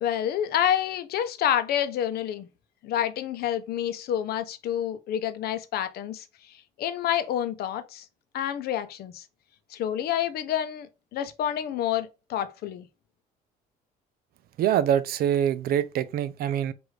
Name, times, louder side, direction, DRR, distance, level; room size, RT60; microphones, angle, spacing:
voice 1, 0.0-2.5 2.8-8.1 8.3-9.2 9.7-12.9, left 10 dB, 65° left, 0.6 m, -28 dB
voice 2, 14.6-16.7, right 10 dB, 65° right, 0.5 m, -24 dB
4.8 x 2.6 x 3.2 m
cardioid pair, 110°, 17 cm